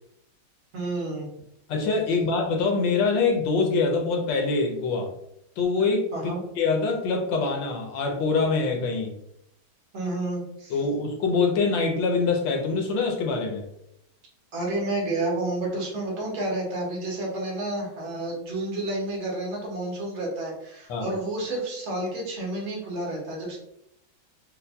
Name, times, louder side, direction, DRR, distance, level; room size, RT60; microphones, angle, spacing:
voice 1, 0.7-1.3 6.1-6.4 9.9-10.8 14.5-23.6, right 2 dB, 85° right, -2 dB, 1.9 m, -30 dB
voice 2, 1.7-5.1 5.6-6.1 6.6-9.1 10.7-13.6 20.9-21.1, left 4 dB, 75° left, 2 dB, 1.3 m, -24 dB
5.5 x 2.1 x 2.2 m, 0.77 s
omnidirectional pair, 2.2 m